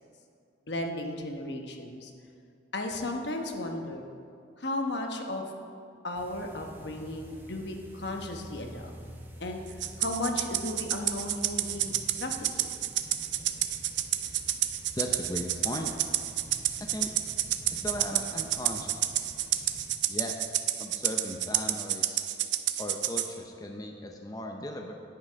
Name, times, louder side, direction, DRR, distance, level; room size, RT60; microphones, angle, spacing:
voice 1, 0.7-2.1 2.7-4.1 4.6-5.4 6.0-8.9 9.4-12.7, left 1 dB, 65° left, 3 dB, 1.1 m, -35 dB
sound 1, 6.1-19.9, equal, 10° right, 1.0 m, -48 dB
Rattle (instrument), 9.8-23.3, right 12 dB, 70° right, 0.5 m, -30 dB
voice 2, 15.0-15.9 16.8-17.1 17.7-19.0 20.1-20.4 20.8-22.2 22.8-24.9, left 1 dB, 20° left, 2 dB, 0.6 m, -37 dB
10.0 x 8.9 x 5.2 m, 2.5 s
head